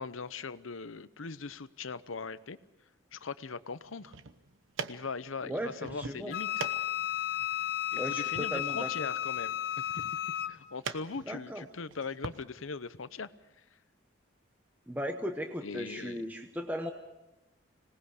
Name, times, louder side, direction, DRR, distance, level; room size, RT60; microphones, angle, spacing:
voice 1, 0.0-2.6 3.1-4.1 4.9-6.5 7.9-10.0 10.5-13.3 15.6-16.2, left 4 dB, 90° left, 15 dB, 0.8 m, -40 dB
sound 1, 3.9-12.4, right 5 dB, 85° right, 1.1 m, -45 dB
voice 2, 5.4-6.3 8.0-8.9 11.3-11.7 14.9-16.9, equal, 10° right, 4 dB, 0.9 m, -37 dB
Wind instrument woodwind instrument, 6.3-10.6, left 12 dB, 50° left, 0.7 m, -33 dB
26.0 x 19.0 x 6.6 m, 0.98 s
head